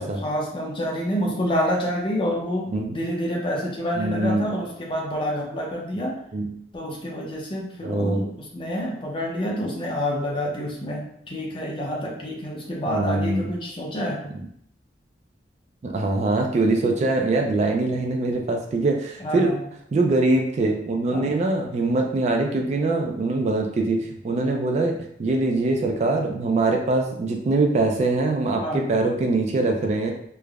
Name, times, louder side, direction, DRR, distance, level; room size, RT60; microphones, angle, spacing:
voice 1, 0.0-2.7 2.9-6.1 6.7-14.2 19.2-19.6 21.1-21.3 28.6-28.9, equal, 30° left, -2 dB, 0.6 m, -28 dB
voice 2, 4.0-4.5 6.3-6.5 7.8-8.3 12.9-13.5 15.8-19.5 19.9-24.9 25.2-30.1, right 2 dB, 40° right, 2 dB, 0.3 m, -23 dB
3.2 x 2.1 x 2.3 m, 0.69 s
head